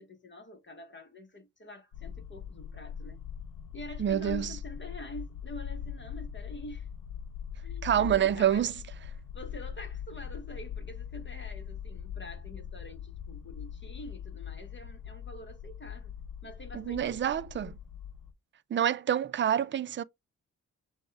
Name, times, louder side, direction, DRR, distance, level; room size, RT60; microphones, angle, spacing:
voice 1, 0.0-3.2 3.7-6.9 7.6-8.7 9.3-16.2 16.4-17.6, equal, 35° left, 1.3 m, -46 dB
sound 1, 1.9-18.3, left 8 dB, 85° left, 0.6 m, -41 dB
voice 2, 4.0-4.6 7.8-8.7 16.7-17.8 18.7-20.0, right 10 dB, 40° right, 0.4 m, -27 dB
6.1 x 2.4 x 3.4 m
cardioid pair, 80°, 32 cm